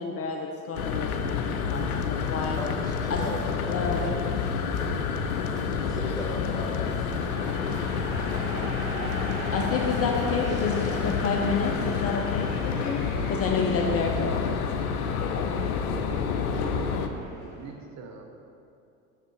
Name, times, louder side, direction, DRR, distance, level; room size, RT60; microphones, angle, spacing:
voice 1, 0.0-2.6 3.1-3.2 3.6-4.0 9.5-13.0 13.3-14.4, left 4 dB, 30° left, 2 dB, 0.7 m, -29 dB
sound 1, 0.7-17.1, left 6 dB, 75° left, 0.7 m, -29 dB
sound 2, 1.7-11.2, left 1 dB, 15° right, 1.4 m, -48 dB
voice 2, 2.6-3.3 3.6-4.1 4.3-5.1 5.7-7.9, left 1 dB, 10° left, -2 dB, 1.5 m, -38 dB
sound 3, 6.2-17.7, right 1 dB, 65° right, 1.7 m, -41 dB
voice 3, 16.0-18.2, right 5 dB, 40° right, 3 dB, 0.8 m, -42 dB
6.6 x 6.5 x 4.7 m, 2.6 s
figure-of-eight pair, 70°, 44 cm